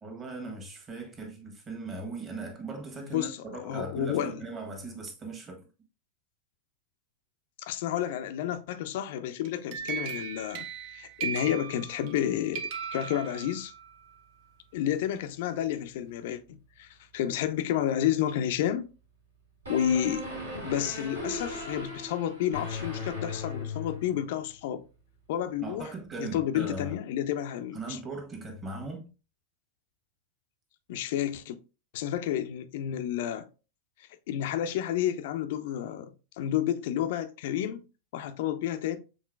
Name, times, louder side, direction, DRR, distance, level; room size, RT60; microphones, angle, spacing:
voice 1, 0.0-5.6 25.6-26.9 27.7-29.1, right 2 dB, 20° right, 1.4 m, -39 dB
voice 2, 3.0-4.4 7.6-13.7 14.7-18.9 19.7-20.2 20.6-24.8 25.3-25.9 26.2-28.0 30.9-31.6 31.9-33.5 34.3-36.1 36.4-37.8 38.1-39.0, left 10 dB, 50° left, 0.5 m, -30 dB
sound 1, 9.4-12.2 12.5-13.8, right 7 dB, 45° right, 0.7 m, -37 dB
sound 2, 19.6-24.3, left 2 dB, 75° right, 1.9 m, -37 dB
6.3 x 3.7 x 2.3 m
figure-of-eight pair, 90°, 0 cm